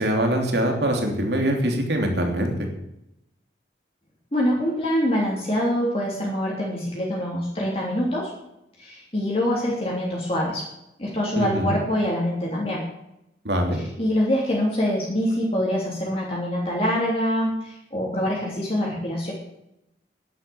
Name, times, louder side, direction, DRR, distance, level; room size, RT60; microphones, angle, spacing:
voice 1, 0.0-2.5 11.4-11.7 13.4-13.8, right 1 dB, 70° right, 2 dB, 3.1 m, -23 dB
voice 2, 4.3-8.3 8.8-10.6 11.0-12.8 14.0-19.3, equal, 30° left, -4 dB, 3.3 m, -25 dB
11.0 x 10.0 x 7.1 m, 0.83 s
head